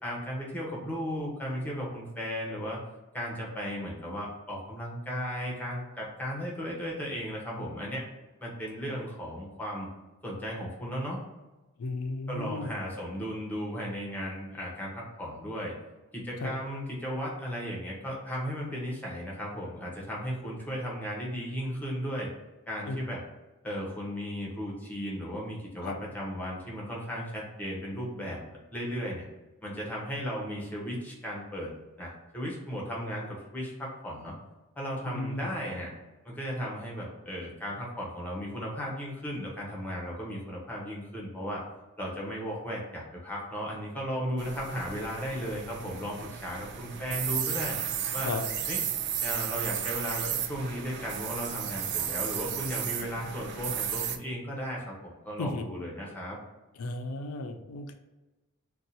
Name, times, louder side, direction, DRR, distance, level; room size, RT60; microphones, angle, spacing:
voice 1, 0.0-2.8 3.1-8.0 8.4-9.9 10.2-11.2 12.3-15.7 16.1-22.3 22.7-23.2 23.6-28.4 28.7-29.2 29.6-31.7 32.0-34.3 34.8-35.9 36.2-41.6 42.0-47.8 48.1-48.3 48.7-48.8 49.2-56.4, equal, 10° left, -4 dB, 0.8 m, -35 dB
voice 2, 11.8-12.7 16.4-16.5 22.9-23.0 25.8-26.0 35.0-35.5 48.2-48.4 55.4-55.7 56.7-57.9, left 2 dB, 80° left, 6 dB, 0.4 m, -34 dB
sound 1, 44.4-54.2, right 8 dB, 55° right, 0.3 m, -34 dB
2.7 x 2.3 x 4.1 m, 1.1 s
head